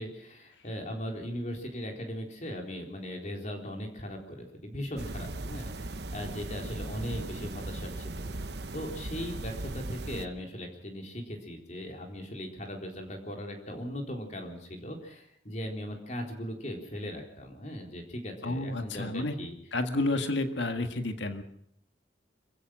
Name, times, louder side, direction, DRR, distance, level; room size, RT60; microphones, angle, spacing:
voice 1, 0.0-8.5 8.7-19.5, equal, 40° left, 2 dB, 3.9 m, -39 dB
sound 1, 5.0-10.3, right 2 dB, 65° right, 1.0 m, -38 dB
voice 2, 18.4-19.3 19.7-21.4, left 2 dB, 85° left, 7 dB, 1.9 m, -30 dB
26.5 x 15.5 x 6.4 m, 0.71 s
head